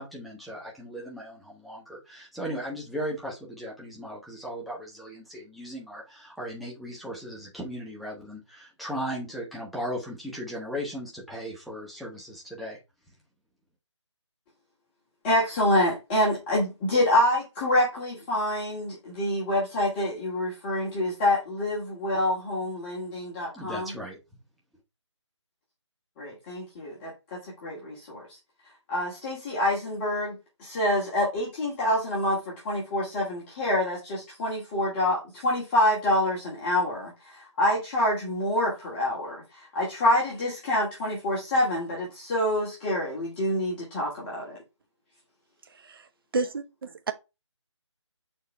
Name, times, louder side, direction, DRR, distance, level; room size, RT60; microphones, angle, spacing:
voice 1, 0.0-12.8 23.5-24.2, equal, ahead, 1.4 m, -37 dB
voice 2, 15.2-23.9 26.2-28.2 28.9-44.6, left 1 dB, 20° left, 2.5 m, -27 dB
voice 3, 45.7-46.1 46.3-47.1, right 3 dB, 50° right, 1.2 m, -31 dB
6.5 x 4.4 x 3.4 m
figure-of-eight pair, 155°, 16 cm